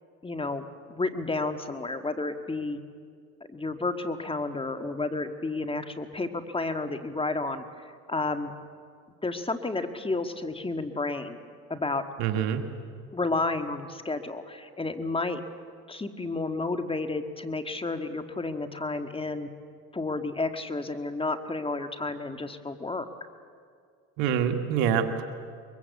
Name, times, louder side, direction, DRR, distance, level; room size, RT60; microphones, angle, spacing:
voice 1, 0.2-2.8 3.5-7.6 8.1-8.5 9.2-11.4 11.7-12.0 13.1-15.4 15.9-19.5 19.9-23.1, left 3 dB, 15° left, 8 dB, 1.7 m, -31 dB
voice 2, 12.2-12.6 24.2-25.2, right 8 dB, 85° right, 7 dB, 1.8 m, -25 dB
23.5 x 22.5 x 8.3 m, 2.1 s
supercardioid pair, 90°, 31 cm